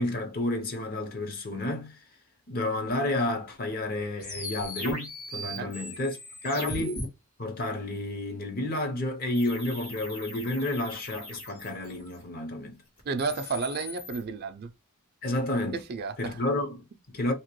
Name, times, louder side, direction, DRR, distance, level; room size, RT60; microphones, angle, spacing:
voice 1, 0.0-2.0 2.5-7.0 7.4-12.8 15.2-15.8 16.2-17.3, left 1 dB, 45° left, 0.7 m, -31 dB
sound 1, 4.2-7.0 9.3-12.2 13.0-14.2, left 1 dB, 80° left, 1.5 m, -39 dB
voice 2, 13.1-14.7 15.9-16.4, right 4 dB, 45° right, 0.4 m, -32 dB
2.9 x 2.9 x 3.0 m
head